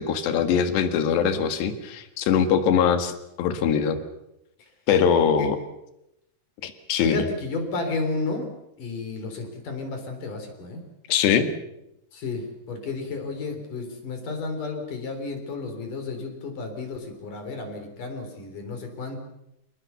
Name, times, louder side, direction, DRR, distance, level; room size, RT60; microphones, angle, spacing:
voice 1, 0.0-4.0 4.9-5.6 6.6-7.2 11.1-11.5, left 7 dB, 90° left, 9 dB, 3.9 m, -22 dB
voice 2, 7.0-8.5 8.8-10.8 12.1-19.2, left 3 dB, 50° left, 5 dB, 5.1 m, -32 dB
27.0 x 19.5 x 6.9 m, 0.84 s
omnidirectional pair, 4.8 m